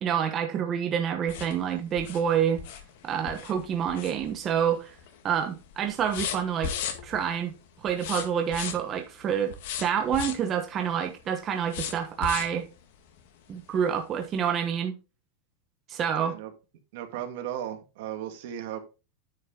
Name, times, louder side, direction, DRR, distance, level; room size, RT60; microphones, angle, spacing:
voice 1, 0.0-2.6 3.0-5.0 5.2-6.7 7.0-7.5 7.8-9.5 9.8-12.6 13.5-14.9 15.9-16.3, right 8 dB, 25° right, 1.1 m, -27 dB
sound 1, 1.3-4.7 5.0-5.4 5.6-7.3 7.9-9.0 9.5-10.5 11.7-12.6 13.2-13.3 13.7-13.8, left 8 dB, 65° left, 1.7 m, -36 dB
voice 2, 16.2-16.5 16.9-18.8, right 10 dB, 65° right, 1.8 m, -36 dB
9.6 x 5.5 x 3.8 m
supercardioid pair, 155°, 0 cm